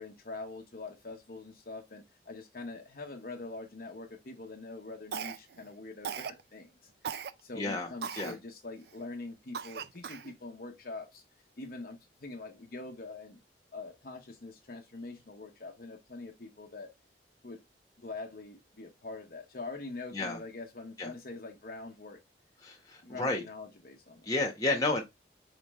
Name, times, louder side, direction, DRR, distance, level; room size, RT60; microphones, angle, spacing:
voice 1, 0.0-6.9 7.4-11.2 11.6-13.4 13.7-16.9 17.4-17.6 18.0-22.2 23.0-24.3, left 3 dB, 50° left, 0.8 m, -44 dB
Cough, 5.1-5.6 6.0-6.4 7.0-7.3 8.0-8.4 8.9-9.0 9.5-10.3, right 7 dB, 60° right, 0.4 m, -38 dB
voice 2, 7.5-7.9 8.1-8.3 20.1-20.4 21.0-21.1 22.6-23.4 24.2-25.0, left 2 dB, 20° left, 1.2 m, -31 dB
4.9 x 3.5 x 3.1 m
head